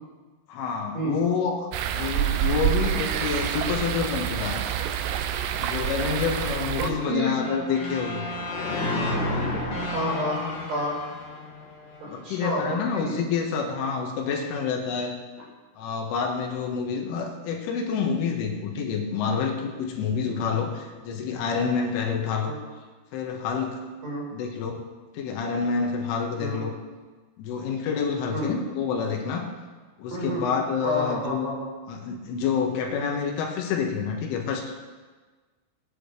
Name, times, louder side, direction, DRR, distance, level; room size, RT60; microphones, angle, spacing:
voice 1, 0.5-4.7 5.6-8.3 8.9-9.3 12.0-15.2 15.8-22.5 23.1-23.8 24.3-24.8 25.1-26.7 27.4-29.5 30.0-31.5 31.9-34.8, left 6 dB, 80° left, 1 dB, 3.9 m, -28 dB
sound 1, 1.7-6.9, right 10 dB, 85° right, 2.4 m, -27 dB
voice 2, 6.6-7.3 9.8-11.0 12.0-13.1 22.4-22.6 24.0-24.3 26.4-26.6 28.3-28.5 30.1-31.7, equal, 55° right, -5 dB, 6.7 m, -30 dB
sound 2, 7.3-12.3, left 1 dB, 35° left, 2.7 m, -31 dB
21.0 x 10.5 x 3.3 m, 1.4 s
omnidirectional pair, 5.8 m